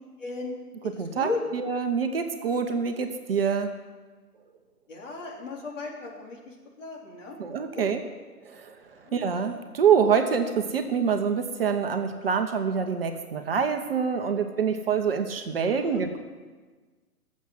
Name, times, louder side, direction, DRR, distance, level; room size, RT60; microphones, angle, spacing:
voice 1, 0.2-1.4 4.9-7.4 7.7-7.9 9.0-9.3 15.8-16.0, left 3 dB, 50° left, -1 dB, 3.5 m, -36 dB
voice 2, 1.0-3.7 7.4-8.0 8.4-8.7 9.1-16.2, right 6 dB, 40° right, 6 dB, 1.0 m, -26 dB
18.5 x 7.5 x 7.8 m, 1.4 s
figure-of-eight pair, 135°, 46 cm